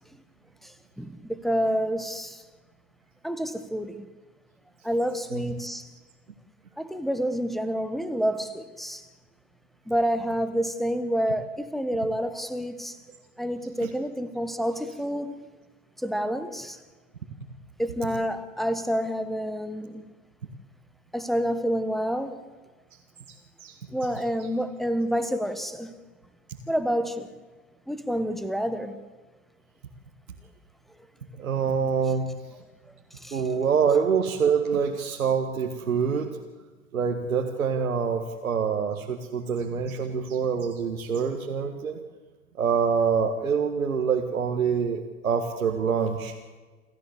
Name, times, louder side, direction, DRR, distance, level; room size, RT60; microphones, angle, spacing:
voice 1, 0.6-2.4 3.2-4.1 4.8-5.9 6.8-9.1 9.9-13.0 13.4-15.4 16.0-16.8 17.8-20.0 21.1-22.3 23.9-25.9 26.7-27.3 27.9-29.0 33.2-33.4, equal, ahead, 1.3 m, -28 dB
voice 2, 23.3-23.8 31.4-32.3 33.3-36.4 36.9-42.0 42.6-46.3, right 6 dB, 75° right, 1.9 m, -26 dB
28.5 x 14.0 x 8.2 m
figure-of-eight pair, 95°, 42 cm